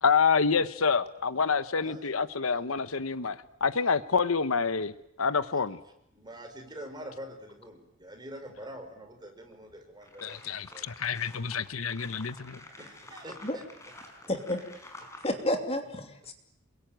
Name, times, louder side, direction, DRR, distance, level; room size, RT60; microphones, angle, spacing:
voice 1, 0.0-4.9 5.2-5.8 10.2-12.6, left 5 dB, 85° left, 14 dB, 1.0 m, -27 dB
voice 2, 6.1-10.9 12.8-13.6 14.0-14.3, equal, 20° right, 4 dB, 5.1 m, -45 dB
sound 1, 9.5-9.6 10.0-15.4, left 2 dB, 15° left, 5.3 m, -49 dB
voice 3, 14.3-14.6 15.2-16.3, left 1 dB, 30° left, 5 dB, 2.8 m, -30 dB
27.5 x 23.0 x 9.2 m, 0.80 s
head